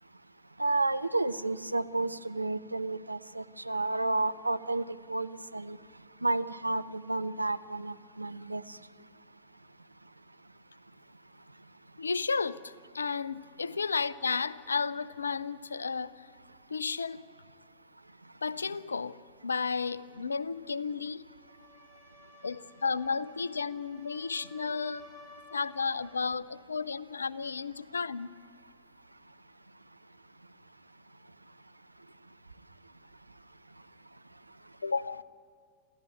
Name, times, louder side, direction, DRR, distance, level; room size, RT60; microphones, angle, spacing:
voice 1, 0.6-5.8 6.2-8.6, right 2 dB, 85° right, 12 dB, 0.7 m, -31 dB
voice 2, 12.0-16.3 16.7-17.2 18.4-21.3 22.4-25.1 25.5-28.3 34.8-35.2, left 5 dB, 75° left, 19 dB, 0.6 m, -33 dB
sound 1, 21.3-26.2, left 2 dB, 15° left, 5.7 m, -55 dB
27.0 x 15.0 x 9.5 m, 2.1 s
figure-of-eight pair, 90°, 0 cm